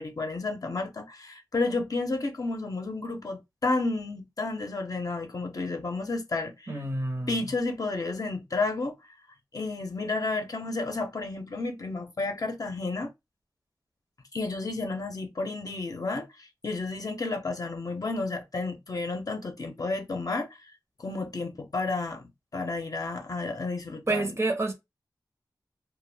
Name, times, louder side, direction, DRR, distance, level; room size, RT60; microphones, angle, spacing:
voice 1, 0.0-6.8 7.3-8.9 9.5-13.1 14.3-20.5 21.0-24.3, left 3 dB, 50° left, 0.7 m, -31 dB
voice 2, 6.7-7.4 24.1-24.7, right 2 dB, 35° right, 0.7 m, -28 dB
2.5 x 2.3 x 3.3 m
wide cardioid pair, 70°, 8 cm